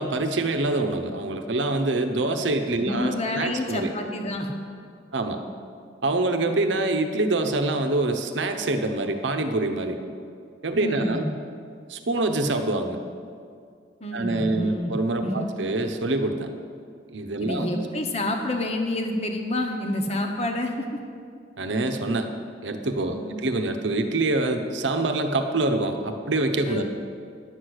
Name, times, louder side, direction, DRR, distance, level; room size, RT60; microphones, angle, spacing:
voice 1, 0.0-3.9 5.1-5.4 6.0-10.0 10.6-11.3 11.9-13.0 14.1-16.5 17.1-17.8 21.6-22.3 22.6-26.8, right 2 dB, 80° right, 6 dB, 0.9 m, -25 dB
voice 2, 2.8-4.5 10.8-11.3 14.0-14.9 15.2-15.4 17.4-20.9 23.1-23.4 26.7-26.8, left 1 dB, 35° left, 3 dB, 1.1 m, -28 dB
10.5 x 6.5 x 7.9 m, 2.3 s
head